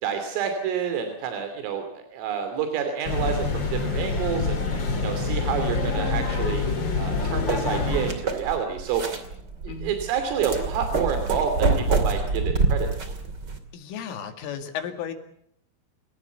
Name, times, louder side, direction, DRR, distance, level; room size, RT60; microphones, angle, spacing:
voice 1, 0.0-4.6 5.0-9.0 9.6-13.1, right 7 dB, 90° right, 6 dB, 5.4 m, -29 dB
sound 1, 3.0-8.1, left 4 dB, 30° left, 2.3 m, -26 dB
sound 2, 7.0-13.6, right 3 dB, 35° right, 2.0 m, -27 dB
voice 2, 13.7-15.1, left 8 dB, 80° left, 7 dB, 4.6 m, -34 dB
29.0 x 17.5 x 8.2 m, 0.70 s
omnidirectional pair, 5.7 m